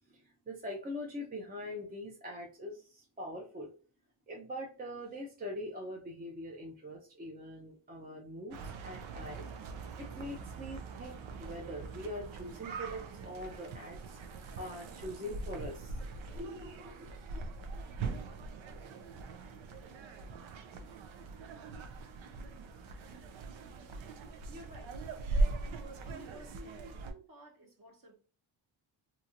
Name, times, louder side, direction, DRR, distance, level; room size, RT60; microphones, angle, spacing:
voice 1, 0.1-3.7 4.3-9.5 10.0-14.2 14.6-16.0 16.4-17.4, left 1 dB, 20° right, -1 dB, 0.6 m, -43 dB
sound 1, 8.5-27.1, right 3 dB, 65° right, 0.7 m, -40 dB
voice 2, 24.5-25.1 26.0-28.2, equal, 40° right, 0 dB, 1.3 m, -53 dB
2.9 x 2.8 x 2.5 m, 0.37 s
cardioid pair, 80°, 50 cm